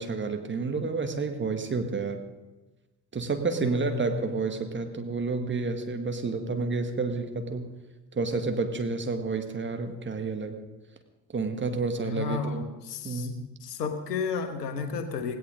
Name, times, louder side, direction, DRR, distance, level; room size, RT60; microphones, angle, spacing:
voice 1, 0.0-2.2 3.1-7.7 8.1-10.6 11.3-12.7 13.0-13.5, right 4 dB, 25° right, 6 dB, 1.7 m, -30 dB
voice 2, 3.6-4.4 12.0-13.3 13.6-15.4, left 5 dB, 75° left, 8 dB, 1.4 m, -33 dB
17.5 x 17.0 x 3.9 m, 1.1 s
figure-of-eight pair, 50°, 48 cm